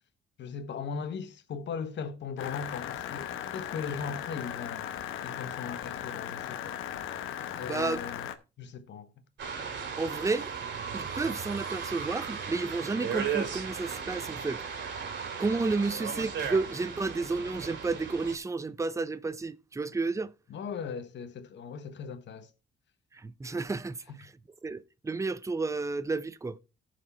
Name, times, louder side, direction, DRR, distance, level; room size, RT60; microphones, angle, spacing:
voice 1, 0.4-5.0 5.2-6.8 7.5-8.3 8.6-9.1 20.5-22.5, left 6 dB, 65° left, 1.3 m, -38 dB
sound 1, 2.4-8.4, left 10 dB, 85° left, 1.0 m, -37 dB
voice 2, 7.6-8.0 10.0-10.5 10.9-14.6 15.4-20.3 23.1-24.3 24.6-26.6, right 3 dB, 15° right, 0.6 m, -31 dB
sound 2, 9.4-18.4, right 6 dB, 65° right, 2.6 m, -36 dB
14.5 x 4.9 x 4.3 m
cardioid pair, 90°, 20 cm